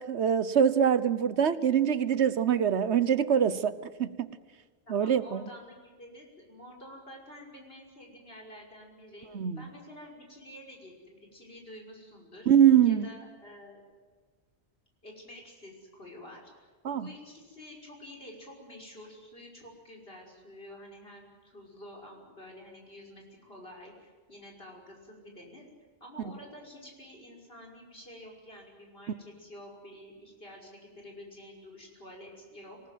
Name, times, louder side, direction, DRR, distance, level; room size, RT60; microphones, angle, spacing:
voice 1, 0.0-4.3 4.9-5.4 9.3-9.6 12.5-13.1 16.8-17.1, right 8 dB, 85° right, 15 dB, 1.3 m, -24 dB
voice 2, 4.9-12.5 12.8-13.8 15.0-16.5 16.8-25.7 26.0-32.8, left 1 dB, 60° left, 0 dB, 5.9 m, -49 dB
25.5 x 19.5 x 9.3 m, 1.5 s
omnidirectional pair, 1.1 m